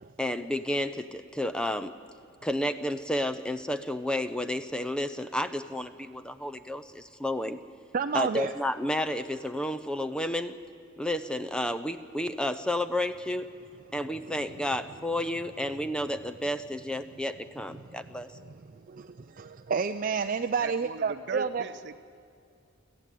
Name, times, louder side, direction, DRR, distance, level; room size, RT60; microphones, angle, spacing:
voice 1, 0.2-2.0 2.4-7.6 8.1-10.6 11.0-13.5 13.9-18.3, left 1 dB, 5° left, 11 dB, 0.7 m, -31 dB
voice 2, 7.9-8.5 18.5-18.6 18.9-21.6, right 5 dB, 40° right, 8 dB, 0.5 m, -30 dB
voice 3, 20.6-22.0, right 5 dB, 60° right, 11 dB, 0.9 m, -38 dB
24.0 x 15.0 x 9.2 m, 2.5 s
head